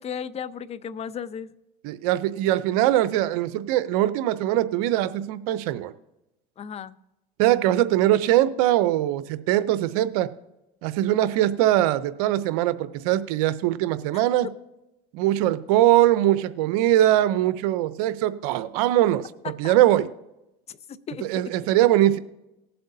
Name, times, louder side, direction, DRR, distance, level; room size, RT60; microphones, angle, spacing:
voice 1, 0.0-1.5 6.6-6.9 14.1-14.2 19.4-19.8 20.7-21.5, left 7 dB, 35° left, 15 dB, 0.6 m, -35 dB
voice 2, 1.8-5.9 7.4-10.3 10.8-14.5 15.1-19.3 19.6-20.1 21.2-22.2, right 13 dB, 80° right, 14 dB, 0.7 m, -21 dB
19.0 x 7.8 x 2.7 m, 0.92 s
supercardioid pair, 95°, 19 cm